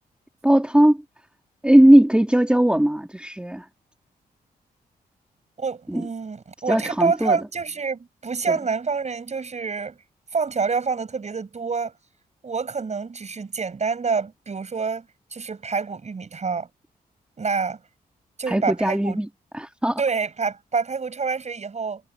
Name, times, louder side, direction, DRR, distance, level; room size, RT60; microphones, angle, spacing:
voice 1, 0.4-1.0 1.6-3.6 5.9-6.1 6.7-7.4 8.5-8.6 18.5-19.3 19.5-20.0, right 1 dB, 5° right, 2.3 m, -18 dB
voice 2, 5.6-10.0 10.3-11.9 12.4-16.7 17.4-17.8 18.4-19.2 20.0-22.0, right 5 dB, 45° right, 7.1 m, -27 dB
cardioid pair, 70°, 16 cm